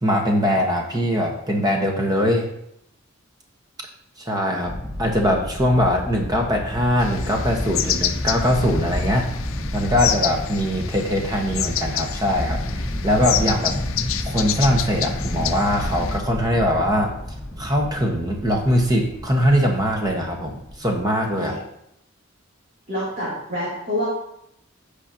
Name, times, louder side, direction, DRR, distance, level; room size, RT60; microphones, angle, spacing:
voice 1, 0.0-2.5 4.3-4.7 5.0-9.3 9.7-13.7 14.2-17.1 17.6-21.6, equal, 20° right, 1 dB, 1.2 m, -21 dB
sound 1, 4.6-21.0, equal, 5° left, 1.4 m, -30 dB
sound 2, 7.0-16.2, left 10 dB, 75° left, 0.5 m, -29 dB
voice 2, 22.9-24.0, equal, 40° right, -11 dB, 2.9 m, -27 dB
15.0 x 5.0 x 2.8 m, 0.77 s
head